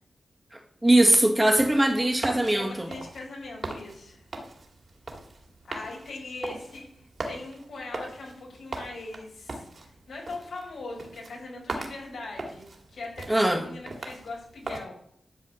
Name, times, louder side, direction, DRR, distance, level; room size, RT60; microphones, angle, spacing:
voice 1, 0.5-2.9 13.3-13.6, right 1 dB, 15° right, 3 dB, 1.7 m, -21 dB
sound 1, 1.4-14.8, right 2 dB, 50° right, 2.4 m, -40 dB
voice 2, 2.5-4.2 5.7-15.0, left 2 dB, 85° left, -1 dB, 4.8 m, -40 dB
12.0 x 4.9 x 8.3 m, 0.67 s
wide cardioid pair, 105°, 0 cm